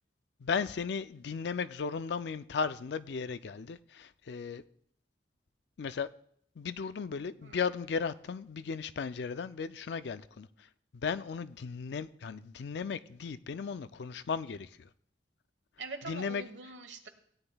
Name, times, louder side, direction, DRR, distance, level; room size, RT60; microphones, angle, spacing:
voice 1, 0.4-4.6 5.8-6.1 6.6-10.5 11.0-14.9 16.1-16.4, left 5 dB, 65° left, 0.4 m, -36 dB
voice 2, 15.8-17.1, right 4 dB, 75° right, 1.2 m, -44 dB
17.0 x 9.8 x 2.3 m
head